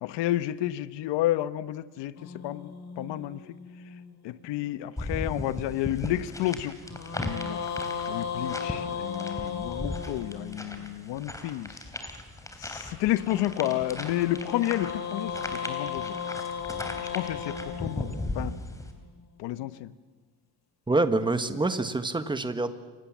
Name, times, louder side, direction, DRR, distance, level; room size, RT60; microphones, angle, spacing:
voice 1, 0.0-3.4 4.2-6.8 7.2-7.6 8.1-11.8 12.6-16.2 17.1-18.1 18.3-18.5 19.4-19.9, left 14 dB, 80° left, 14 dB, 1.3 m, -31 dB
sound 1, 2.2-4.6 6.8-11.0 13.1-19.3, left 7 dB, 40° left, 3.1 m, -36 dB
sound 2, 5.0-18.9, left 1 dB, 10° left, 3.3 m, -38 dB
voice 2, 20.9-22.7, right 2 dB, 10° right, 10 dB, 1.5 m, -26 dB
29.5 x 26.0 x 7.5 m, 1.3 s
cardioid pair, 145°, 41 cm